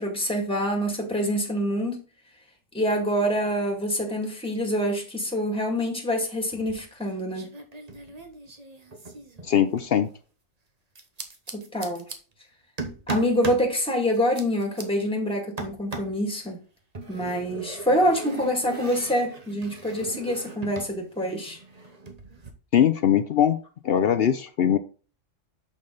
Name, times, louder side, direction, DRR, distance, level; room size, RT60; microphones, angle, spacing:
voice 1, 0.0-2.0 2.7-7.5 11.5-12.1 13.1-16.6 17.1-21.6, equal, 5° left, 2.1 m, -26 dB
sound 1, 6.5-7.1 7.3-9.9 10.9-12.2 12.8-13.7 14.1-14.8 15.6-16.2 16.9-20.9 21.2-22.5, right 3 dB, 30° right, 1.1 m, -38 dB
voice 2, 9.4-10.1 22.7-23.6 23.8-24.8, left 9 dB, 60° left, 0.7 m, -21 dB
6.7 x 5.4 x 3.9 m
omnidirectional pair, 1.4 m